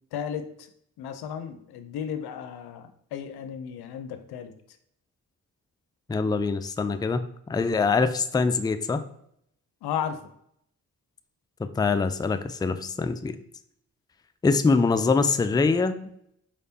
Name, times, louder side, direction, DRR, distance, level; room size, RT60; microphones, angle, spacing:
voice 1, 0.1-0.5 1.0-4.5 9.8-10.2, left 8 dB, 90° left, 9 dB, 0.5 m, -34 dB
voice 2, 6.1-9.0 11.6-13.4 14.4-16.0, left 4 dB, 10° left, 10 dB, 0.3 m, -24 dB
4.7 x 3.3 x 2.7 m, 0.71 s
supercardioid pair, 40°, 37 cm